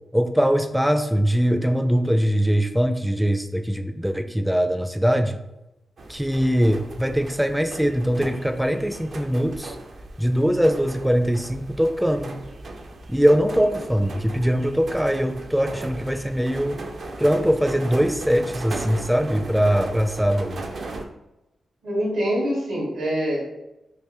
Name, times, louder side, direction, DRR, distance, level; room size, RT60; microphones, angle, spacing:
voice 1, 0.1-5.4 6.1-9.8 10.2-12.3 13.1-16.8 17.2-20.6, equal, 5° right, 7 dB, 0.3 m, -22 dB
sound 1, 6.0-21.0, right 2 dB, 65° right, 0.4 m, -37 dB
voice 2, 21.8-23.4, equal, 90° right, -3 dB, 1.2 m, -24 dB
3.3 x 2.5 x 3.2 m, 0.94 s
cardioid pair, 60°, 0 cm